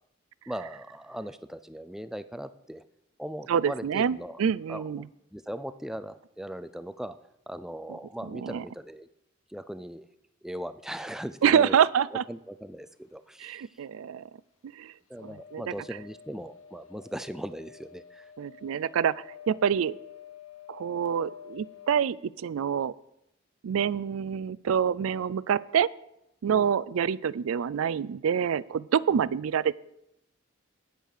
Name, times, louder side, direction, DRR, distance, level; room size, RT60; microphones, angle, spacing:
voice 1, 0.5-2.8 3.2-4.4 4.7-4.8 5.3-7.2 7.5-9.1 9.5-10.1 10.4-11.7 12.3-13.8 15.1-18.3 26.5-26.7 29.1-29.3, equal, ahead, 11 dB, 0.4 m, -39 dB
voice 2, 3.5-5.1 7.9-8.0 8.3-8.6 11.4-12.2 13.4-14.3 14.7-14.9 15.2-15.7 18.4-20.0 20.7-22.9 23.6-25.9 26.4-29.7, right 8 dB, 85° right, 19 dB, 0.4 m, -27 dB
sound 1, 15.1-22.1, left 9 dB, 90° left, 0.9 m, -49 dB
9.0 x 8.0 x 6.5 m, 0.83 s
head